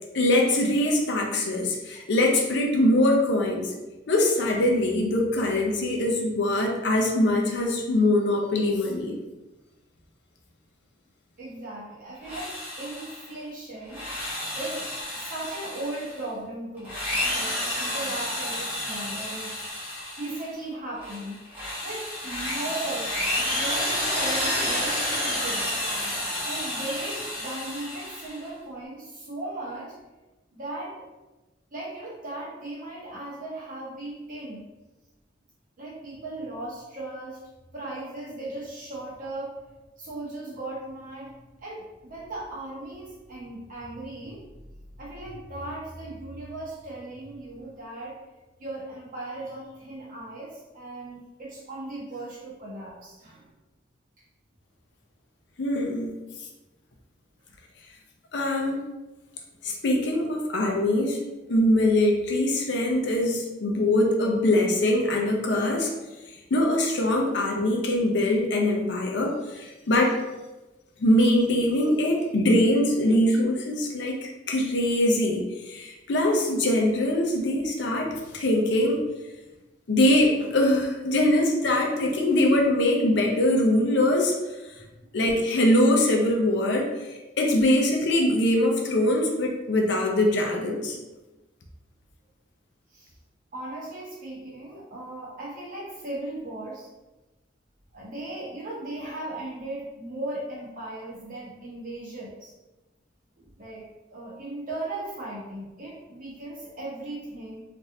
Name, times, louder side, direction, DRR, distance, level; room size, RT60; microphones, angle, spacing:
voice 1, 0.1-3.7 4.1-9.2 55.6-56.1 58.3-58.8 59.6-61.2 61.5-65.9 66.5-70.2 71.0-79.0 79.9-84.3 85.1-86.9 87.4-91.0, left 1 dB, 70° left, 1 dB, 0.5 m, -23 dB
voice 2, 11.4-14.0 14.5-14.9 15.1-16.9 17.3-19.7 20.2-21.4 21.8-23.1 23.4-25.8 26.4-29.9 30.5-31.1 31.7-34.6 35.8-37.4 37.7-39.5 40.0-44.4 44.9-48.2 48.6-53.5 85.0-85.1 92.9-93.1 93.5-96.9 97.9-102.5 103.3-103.8 104.1-107.6, right 2 dB, 50° right, -6 dB, 1.1 m, -37 dB
Drill, 12.2-13.3 13.8-16.2 16.8-20.5 21.0-28.4, left 1 dB, 10° right, 0.9 m, -30 dB
3.2 x 2.5 x 2.6 m, 1.1 s
head